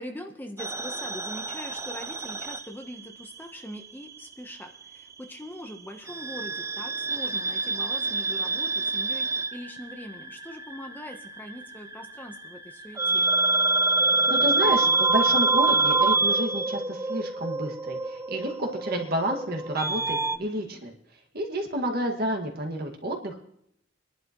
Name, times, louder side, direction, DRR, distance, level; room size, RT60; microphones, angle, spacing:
voice 1, 0.0-13.3 20.3-20.8, left 1 dB, 10° left, 4 dB, 1.0 m, -42 dB
sound 1, 0.6-3.4 3.7-4.9 6.1-20.4, right 3 dB, 15° right, 0.5 m, -26 dB
voice 2, 14.3-20.9 21.3-23.4, right 1 dB, 55° right, 2 dB, 2.0 m, -30 dB
23.0 x 11.5 x 3.1 m, 0.73 s
head